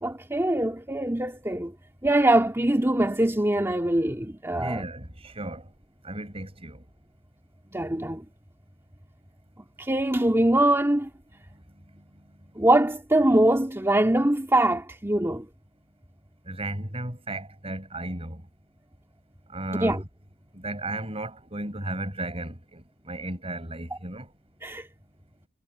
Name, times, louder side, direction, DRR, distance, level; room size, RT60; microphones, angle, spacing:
voice 1, 0.0-1.7 2.0-4.8 7.7-8.2 9.8-11.1 12.6-15.5 19.8-20.0 24.6-24.9, right 1 dB, 10° right, 2.3 m, -23 dB
voice 2, 4.5-5.7 6.0-6.8 16.5-18.4 19.5-20.1 20.5-24.3, right 1 dB, 30° right, 6.7 m, -34 dB
head